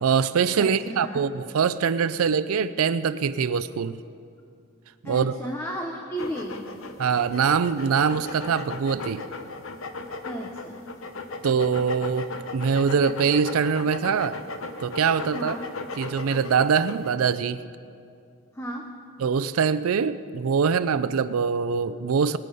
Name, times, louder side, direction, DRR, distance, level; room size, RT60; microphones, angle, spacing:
voice 1, 0.0-4.0 5.0-5.4 7.0-9.3 11.4-14.4 14.8-15.6 16.0-17.6 19.2-22.4, right 6 dB, 90° right, 13 dB, 0.4 m, -23 dB
voice 2, 0.6-1.2 5.0-6.7 10.2-10.9 15.3-15.7 18.5-18.9, equal, 10° left, 2 dB, 0.8 m, -34 dB
sound 1, 6.2-17.1, left 3 dB, 70° left, 0.9 m, -37 dB
20.0 x 9.1 x 5.4 m, 2.4 s
head